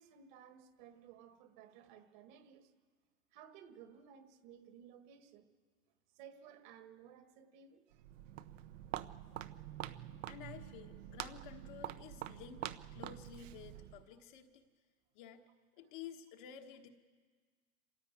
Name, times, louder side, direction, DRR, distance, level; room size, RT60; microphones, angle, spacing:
voice 1, 0.0-2.7 3.3-5.5 6.1-8.1 14.1-14.2, right 8 dB, 35° right, 7 dB, 1.7 m, -57 dB
Walk footsteps, 7.9-14.1, right 12 dB, 60° right, 1.0 m, -46 dB
voice 2, 10.3-14.7 15.1-15.4 15.7-16.9, left 8 dB, 35° left, 5 dB, 1.4 m, -52 dB
26.5 x 16.0 x 9.3 m, 1.5 s
supercardioid pair, 175°, 43 cm